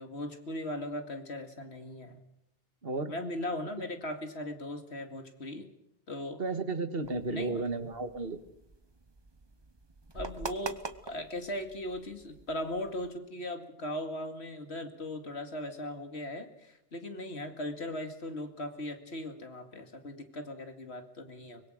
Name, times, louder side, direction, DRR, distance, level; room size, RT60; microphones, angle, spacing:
voice 1, 0.0-2.2 3.1-5.7 6.1-6.4 7.3-7.6 10.1-21.6, left 1 dB, 80° left, 6 dB, 2.6 m, -38 dB
voice 2, 2.8-3.1 6.4-8.4, right 3 dB, 60° right, 9 dB, 1.9 m, -33 dB
sound 1, 7.0-13.1, right 3 dB, 25° right, 1.0 m, -45 dB
24.0 x 21.5 x 6.5 m, 0.81 s
omnidirectional pair, 1.1 m